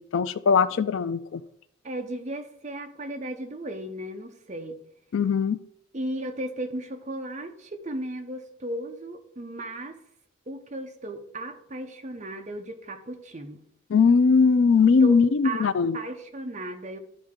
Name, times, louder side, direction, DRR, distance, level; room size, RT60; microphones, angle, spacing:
voice 1, 0.0-1.4 5.1-5.6 13.9-16.0, left 5 dB, 75° left, 0.4 m, -20 dB
voice 2, 1.8-4.8 5.9-10.0 10.5-13.6 15.0-17.0, right 1 dB, 35° right, 0.7 m, -35 dB
11.5 x 4.3 x 3.7 m
head